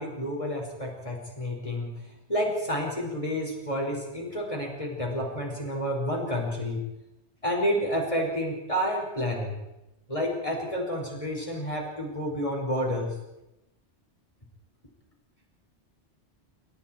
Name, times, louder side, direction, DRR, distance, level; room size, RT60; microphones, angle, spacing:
voice 1, 0.0-1.9 2.3-6.8 7.4-9.5 10.1-13.1, equal, 30° left, -1 dB, 5.7 m, -30 dB
28.5 x 28.5 x 4.6 m, 0.92 s
omnidirectional pair, 1.2 m